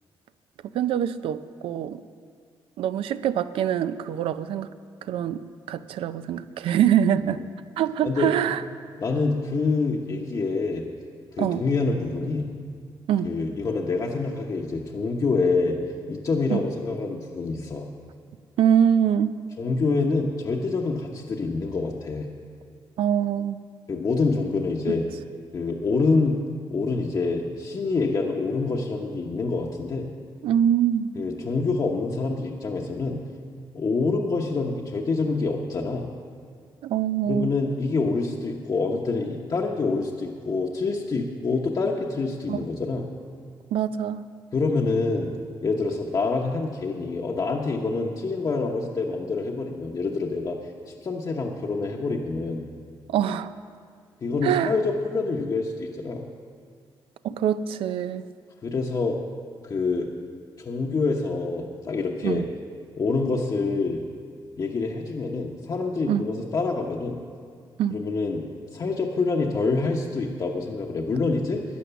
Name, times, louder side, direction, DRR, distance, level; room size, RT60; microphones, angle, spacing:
voice 1, 0.7-2.0 2.8-4.7 5.0-5.4 5.7-7.4 7.8-8.6 11.4-11.6 13.1-13.3 16.5-16.6 18.6-19.3 23.0-23.6 30.4-31.1 36.8-37.5 42.5-42.6 43.7-44.2 53.1-53.5 54.4-54.7 57.2-58.3 62.2-62.5 66.1-66.2 67.8-68.0, right 9 dB, 90° right, 13 dB, 0.5 m, -24 dB
voice 2, 9.0-10.8 11.4-12.5 13.2-15.8 16.1-17.9 19.6-22.3 23.9-25.1 25.5-26.4 26.7-30.1 31.2-33.2 33.7-36.1 37.3-43.0 44.5-45.3 45.6-50.6 51.0-52.7 54.2-56.2 58.6-59.2 59.6-60.1 60.6-62.4 63.0-64.0 64.6-67.2 67.9-68.4 68.7-71.6, left 3 dB, 45° left, 0 dB, 0.9 m, -26 dB
12.5 x 9.4 x 6.9 m, 2.1 s
cardioid pair, 95°, 9 cm